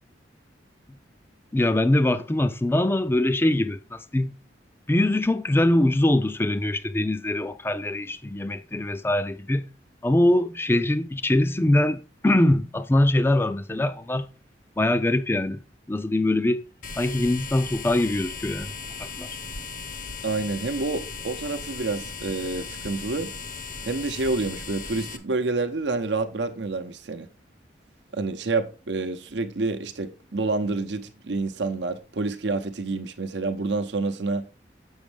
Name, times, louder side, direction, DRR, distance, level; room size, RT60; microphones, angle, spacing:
voice 1, 1.5-4.3 4.9-9.7 10.0-14.3 14.8-16.6 17.0-18.7 19.0-19.4, left 1 dB, 15° left, 0.4 m, -23 dB
sound 1, 16.8-25.2, left 5 dB, 50° left, 0.8 m, -37 dB
voice 2, 20.2-23.3 23.9-27.3 28.1-34.5, right 3 dB, 80° right, 0.7 m, -28 dB
7.1 x 6.3 x 3.4 m
head